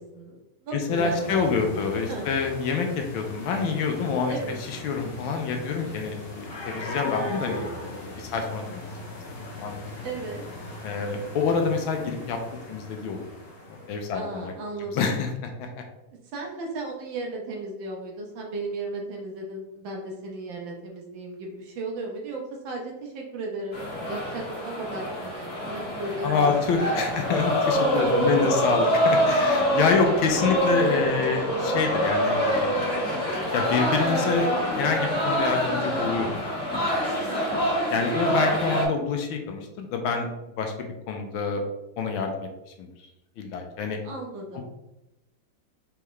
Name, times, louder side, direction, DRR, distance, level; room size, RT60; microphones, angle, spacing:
voice 1, 0.0-1.5 2.1-2.3 4.3-4.5 10.0-10.4 14.1-15.2 16.3-26.3 26.8-27.3 27.9-28.5 29.9-30.1 30.4-30.6 37.2-37.6 44.0-44.6, right 2 dB, 65° right, -1 dB, 1.5 m, -35 dB
voice 2, 0.9-4.3 4.7-8.9 9.5-9.8 10.8-12.4 12.7-13.2 13.9-14.5 14.9-15.3 15.6-15.7 26.2-32.7 33.5-34.5 34.8-36.3 36.7-37.3 37.9-40.3 40.6-41.6 42.0-42.5 42.8-42.9 43.4-44.0 44.5-44.6, left 5 dB, 75° left, 4 dB, 1.3 m, -27 dB
sound 1, 0.9-14.4, left 1 dB, 55° left, 0.6 m, -38 dB
sound 2, 23.7-38.9, equal, 35° left, 1.5 m, -25 dB
4.6 x 3.4 x 3.0 m, 0.93 s
omnidirectional pair, 2.4 m